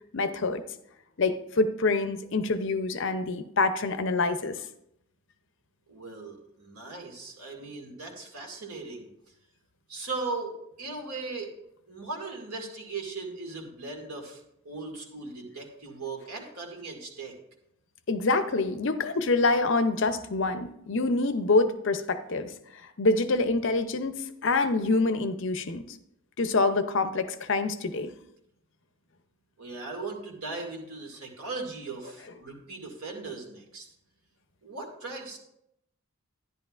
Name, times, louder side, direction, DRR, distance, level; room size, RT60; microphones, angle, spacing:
voice 1, 0.1-0.6 1.2-4.6 18.1-25.8 26.4-28.1, left 3 dB, 55° left, 10 dB, 0.6 m, -26 dB
voice 2, 5.9-9.1 9.9-11.5 11.9-17.3 29.6-33.9 34.6-35.4, right 3 dB, 85° right, 1 dB, 2.1 m, -38 dB
11.0 x 10.5 x 2.5 m, 0.79 s
head